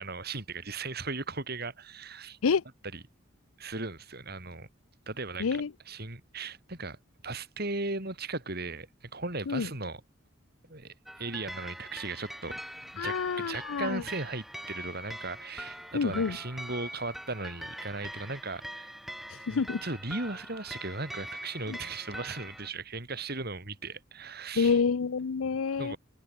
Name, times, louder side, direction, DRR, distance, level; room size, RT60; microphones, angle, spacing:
voice 1, 0.0-2.4 2.9-3.0 3.6-4.7 5.1-7.0 7.2-10.0 10.7-12.6 12.9-18.9 19.5-24.8 25.8-26.0, right 3 dB, 50° right, 4.6 m, -37 dB
voice 2, 5.4-5.7 9.5-9.7 13.0-14.0 15.9-16.4 19.5-19.8 21.7-21.8 24.6-25.9, left 5 dB, 90° left, 0.6 m, -28 dB
sound 1, 11.1-22.7, equal, ahead, 2.9 m, -43 dB
head